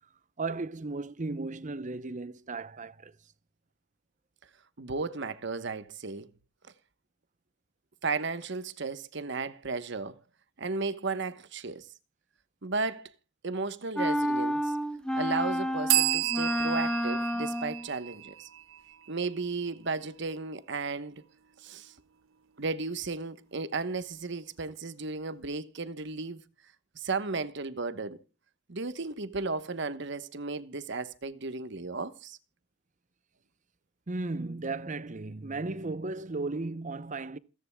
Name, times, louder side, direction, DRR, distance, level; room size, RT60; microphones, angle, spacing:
voice 1, 0.4-3.2 34.1-37.4, right 3 dB, 35° right, 0.7 m, -35 dB
voice 2, 4.8-6.3 8.0-10.2 10.6-11.9 12.6-13.1 13.4-14.7 15.1-18.5 19.1-21.2 21.6-21.9 22.6-26.4 26.9-28.2 28.7-32.4, right 3 dB, 60° right, 1.1 m, -34 dB
sound 1, 14.0-17.9, equal, 5° left, 0.9 m, -30 dB
sound 2, 15.9-19.4, right 15 dB, 75° right, 0.8 m, -31 dB
28.0 x 10.5 x 2.3 m
head